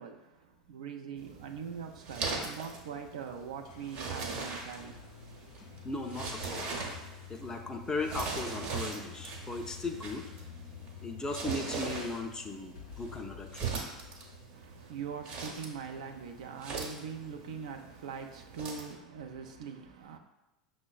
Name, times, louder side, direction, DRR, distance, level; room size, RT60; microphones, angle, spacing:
voice 1, 0.0-5.0 14.5-20.2, right 6 dB, 75° right, 0.4 m, -42 dB
sound 1, 1.2-18.9, right 4 dB, 55° right, 0.9 m, -41 dB
sound 2, 3.4-15.0, left 9 dB, 70° left, 0.5 m, -50 dB
voice 2, 5.8-6.7 7.3-10.3 11.0-13.7, left 2 dB, 20° left, 0.4 m, -37 dB
5.8 x 2.0 x 2.3 m
hypercardioid pair, 85°, 4 cm